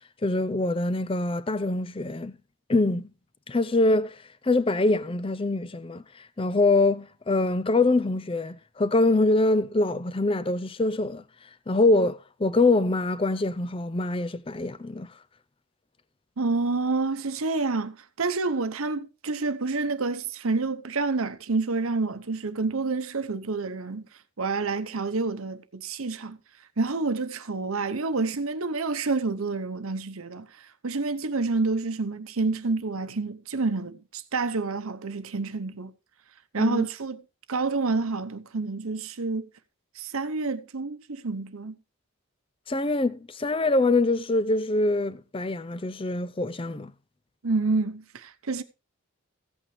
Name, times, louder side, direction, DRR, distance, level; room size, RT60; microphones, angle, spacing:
voice 1, 0.2-2.4 2.7-3.1 3.5-4.2 4.4-6.0 6.4-11.2 11.7-15.1 36.6-36.9 42.7-46.9, left 2 dB, 25° left, 0.5 m, -24 dB
voice 2, 16.4-24.0 24.4-26.4 26.8-35.9 36.5-37.2 37.5-39.5 39.9-41.8 47.4-48.6, right 3 dB, 75° right, 0.9 m, -28 dB
15.0 x 8.5 x 3.2 m
head